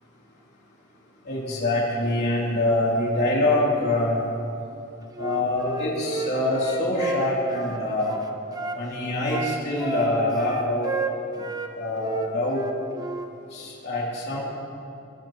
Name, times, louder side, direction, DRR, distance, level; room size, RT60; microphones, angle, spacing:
voice 1, 1.2-4.2 5.2-8.1 8.7-10.9 11.7-12.6 13.5-14.4, left 1 dB, 55° left, -6 dB, 3.3 m, -25 dB
Wind instrument woodwind instrument, 5.1-8.8 9.3-11.7 12.0-13.3, right 3 dB, 20° right, 0.8 m, -32 dB
21.5 x 14.5 x 3.1 m, 2.7 s
head